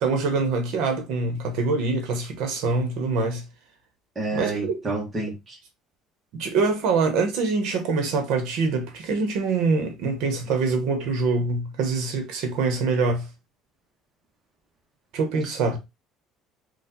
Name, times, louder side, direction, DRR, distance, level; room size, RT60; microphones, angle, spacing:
voice 1, 0.0-3.4 4.3-4.8 6.3-13.3 15.1-15.8, right 4 dB, 60° right, 1.0 m, -24 dB
voice 2, 4.1-5.6, right 2 dB, 15° right, 1.1 m, -29 dB
4.5 x 2.4 x 3.7 m
cardioid pair, 175°, 0 cm